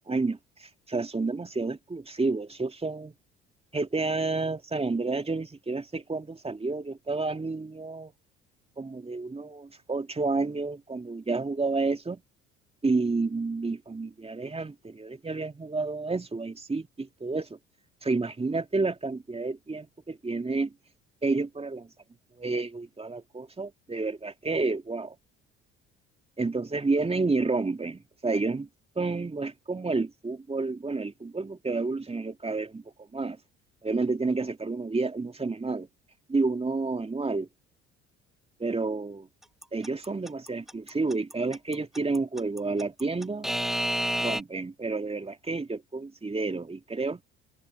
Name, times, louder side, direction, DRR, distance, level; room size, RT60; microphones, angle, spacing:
voice 1, 0.0-3.1 3.7-8.1 8.8-12.2 12.8-17.6 18.0-20.7 21.2-21.9 22.4-25.1 26.4-28.7 29.0-32.8 33.1-33.4 33.8-35.9 36.3-37.5 38.6-39.3 39.7-43.5 44.2-47.2, right 3 dB, 15° right, 2.3 m, -30 dB
Alarm / Clock, 39.6-44.4, equal, ahead, 0.8 m, -29 dB
figure-of-eight pair, 55°, 35 cm